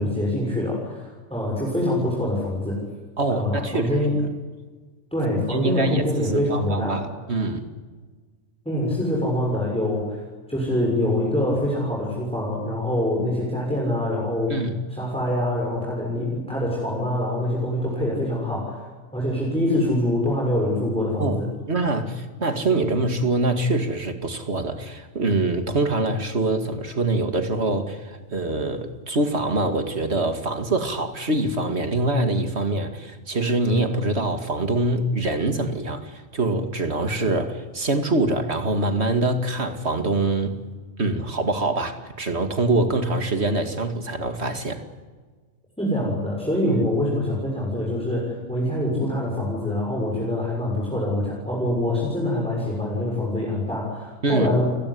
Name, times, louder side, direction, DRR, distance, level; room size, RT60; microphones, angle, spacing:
voice 1, 0.0-2.8 3.3-4.2 5.1-7.0 8.6-10.2 10.5-14.5 14.9-18.9 19.1-21.5 45.8-54.7, left 1 dB, 5° left, -3 dB, 6.8 m, -25 dB
voice 2, 3.2-4.0 5.5-7.7 14.5-14.8 21.2-21.4 21.7-40.6 41.0-44.8 46.7-46.8 54.2-54.5, right 2 dB, 55° right, 7 dB, 2.6 m, -24 dB
30.0 x 17.5 x 10.0 m, 1.4 s
omnidirectional pair, 1.3 m